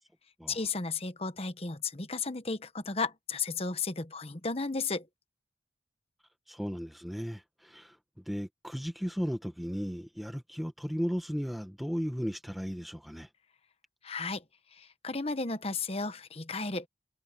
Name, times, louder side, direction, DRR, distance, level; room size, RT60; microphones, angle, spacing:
voice 1, 0.5-5.1 14.0-14.4 14.7-16.9, left 4 dB, 35° left, 1.1 m, -34 dB
voice 2, 6.5-13.3, equal, ahead, 0.8 m, -35 dB
head